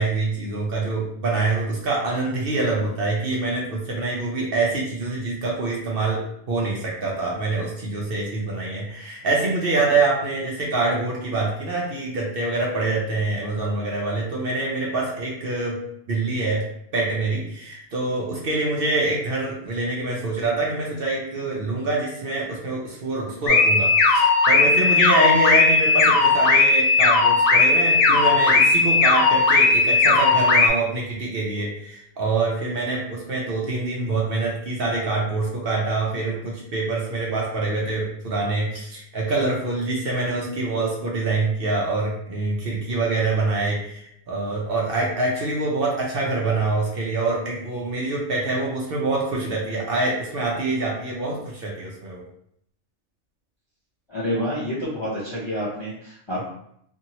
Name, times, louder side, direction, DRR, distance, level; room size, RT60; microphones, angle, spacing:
voice 1, 0.0-15.8 16.1-16.6 16.9-52.2, right 2 dB, 55° right, -3 dB, 0.7 m, -25 dB
sound 1, 23.5-30.7, left 3 dB, 80° left, 1.0 m, -17 dB
voice 2, 54.1-56.4, equal, 35° left, -7 dB, 0.4 m, -28 dB
2.8 x 2.6 x 2.8 m, 0.72 s
omnidirectional pair, 1.4 m